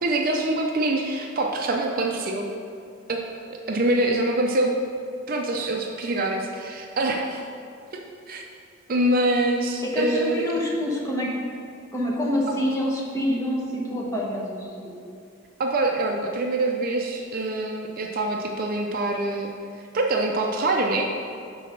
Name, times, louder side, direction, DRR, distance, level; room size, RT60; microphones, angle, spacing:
voice 1, 0.0-2.5 3.1-4.7 5.3-7.4 7.9-8.4 8.9-10.5 12.5-12.6 15.6-19.5 19.9-21.1, right 2 dB, 45° right, 2 dB, 0.5 m, -25 dB
voice 2, 9.9-11.3 11.9-14.6, left 1 dB, 15° left, -4 dB, 1.0 m, -26 dB
6.2 x 4.1 x 5.8 m, 2.4 s
head